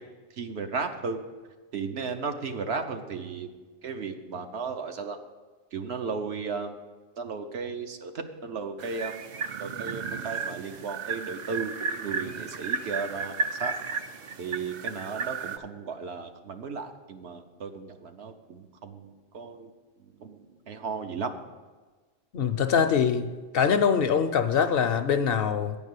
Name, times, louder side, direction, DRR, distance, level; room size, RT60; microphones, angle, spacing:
voice 1, 0.4-1.2 1.7-3.5 3.8-5.2 5.7-6.7 7.2-9.1 9.6-13.3 13.6-13.7 14.4-19.7 20.2-21.3, right 5 dB, 70° right, 6 dB, 1.1 m, -35 dB
sound 1, 8.8-15.6, right 5 dB, 55° right, 0.5 m, -34 dB
voice 2, 22.3-25.8, left 7 dB, 65° left, 9 dB, 0.7 m, -24 dB
9.3 x 5.3 x 8.1 m, 1.3 s
omnidirectional pair, 1.2 m